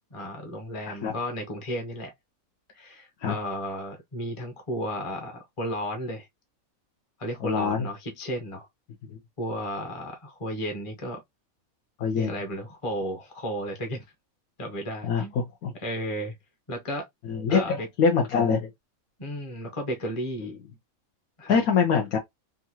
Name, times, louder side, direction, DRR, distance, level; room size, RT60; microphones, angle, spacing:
voice 1, 0.1-2.1 2.7-6.3 7.2-8.7 9.4-11.2 12.2-14.0 14.6-15.3 15.8-16.4 16.7-17.1 17.5-17.9 19.2-20.5 21.4-21.6, equal, 30° left, 0.7 m, -33 dB
voice 2, 7.4-7.9 12.0-12.3 15.1-15.2 15.6-15.7 17.3-18.7 21.5-22.2, left 6 dB, 90° left, 1.3 m, -23 dB
3.7 x 2.5 x 2.8 m
omnidirectional pair, 1.5 m